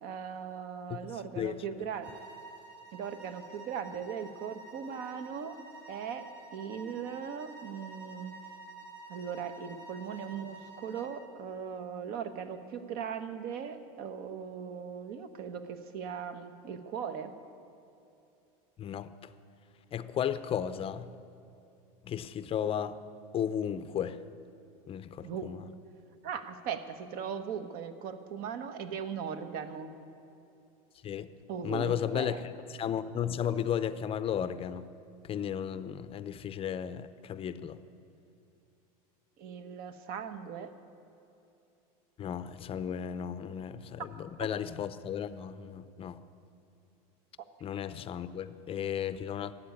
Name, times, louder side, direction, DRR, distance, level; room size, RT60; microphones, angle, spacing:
voice 1, 0.0-2.1 2.9-5.6 5.9-8.3 9.1-17.3 25.2-25.5 26.2-29.9 31.5-32.4 39.4-40.7, right 7 dB, 50° right, 1.2 m, -39 dB
sound 1, 2.0-11.2, right 4 dB, 75° right, 3.7 m, -49 dB
voice 2, 18.8-19.1 19.9-21.1 22.1-23.0 23.3-24.2 24.9-25.6 31.0-31.3 31.6-34.9 35.3-37.8 42.2-46.2 47.6-49.5, left 9 dB, 30° left, 0.6 m, -34 dB
13.5 x 8.4 x 9.8 m
supercardioid pair, 120°, 19 cm